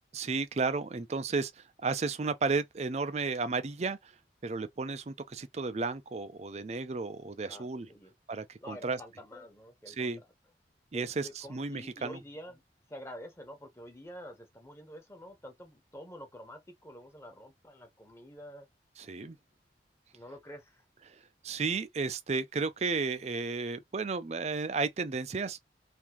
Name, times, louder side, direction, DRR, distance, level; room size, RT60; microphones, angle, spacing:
voice 1, 0.1-4.1 4.4-7.9 8.3-9.0 9.9-10.2 10.9-12.2 19.0-19.4 21.1-25.6, right 4 dB, 35° right, 0.4 m, -33 dB
voice 2, 7.5-8.1 8.6-10.1 10.9-12.6 12.9-18.7 20.1-20.8, equal, 15° left, 1.0 m, -48 dB
3.5 x 2.7 x 3.0 m
head